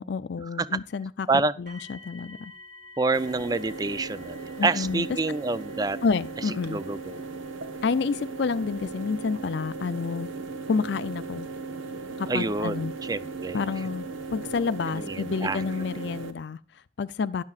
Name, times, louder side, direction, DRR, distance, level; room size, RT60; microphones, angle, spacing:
voice 1, 0.0-1.3 1.6-2.5 4.6-5.1 6.0-6.8 7.8-10.3 10.7-11.5 12.2-12.9 13.5-14.0 14.3-17.4, left 5 dB, 60° left, 0.4 m, -29 dB
sound 1, 1.7-14.5 15.4-15.5 16.1-16.2, left 2 dB, 45° right, 1.8 m, -53 dB
voice 2, 3.0-6.0 6.7-7.2 12.3-13.6 14.9-15.6, right 3 dB, 20° right, 0.4 m, -27 dB
sound 2, 3.1-16.3, right 4 dB, 85° right, 1.1 m, -37 dB
13.0 x 11.0 x 2.4 m
head